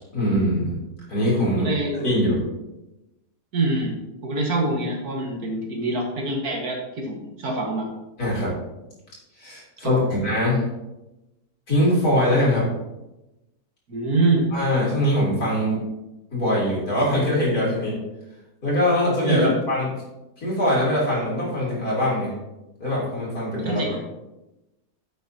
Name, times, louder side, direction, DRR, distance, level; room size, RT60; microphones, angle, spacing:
voice 1, 0.1-0.8 1.1-1.7 2.0-2.4 8.2-8.5 9.4-10.7 11.7-12.7 14.5-15.8 16.3-18.0 18.6-19.9 20.4-22.4 22.8-23.8, left 1 dB, 70° left, -6 dB, 3.9 m, -22 dB
voice 2, 1.6-2.0 3.5-4.0 4.2-7.9 9.8-10.1 13.9-14.5 19.2-19.6 23.6-24.0, right 2 dB, 70° right, 0 dB, 2.1 m, -24 dB
9.8 x 7.8 x 2.9 m, 0.98 s
omnidirectional pair, 1.7 m